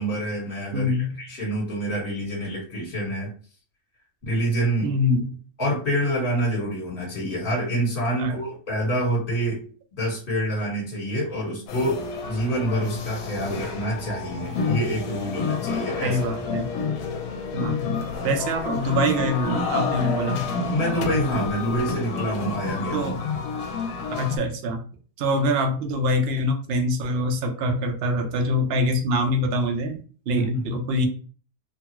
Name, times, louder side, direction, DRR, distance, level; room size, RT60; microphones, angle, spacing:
voice 1, 0.0-3.3 4.2-4.9 5.6-9.6 10.0-12.0 12.3-16.2 20.7-23.1 30.3-30.7, right 1 dB, 35° left, -6 dB, 1.4 m, -27 dB
voice 2, 0.7-1.1 4.8-5.3 8.2-8.4 16.0-16.7 17.5-18.0 18.2-20.5 22.9-23.1 24.2-24.8 25.2-31.1, left 1 dB, 65° right, 3 dB, 0.6 m, -24 dB
sound 1, 11.7-24.4, left 4 dB, 75° left, 1.0 m, -29 dB
2.8 x 2.3 x 2.9 m, 0.40 s
omnidirectional pair, 1.7 m